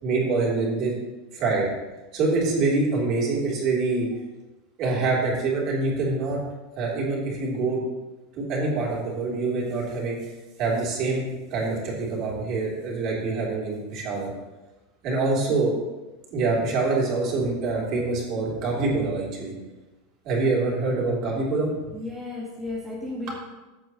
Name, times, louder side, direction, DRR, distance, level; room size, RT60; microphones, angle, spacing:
voice 1, 0.0-0.9 1.3-1.7 2.1-4.1 4.8-6.4 6.8-7.8 8.4-10.2 10.6-14.3 15.0-15.7 16.3-19.5 20.2-21.7, right 3 dB, 35° right, -3 dB, 3.3 m, -25 dB
voice 2, 21.9-23.4, left 2 dB, 5° right, -7 dB, 1.4 m, -34 dB
15.5 x 8.2 x 3.1 m, 1.1 s
supercardioid pair, 170°, 0 cm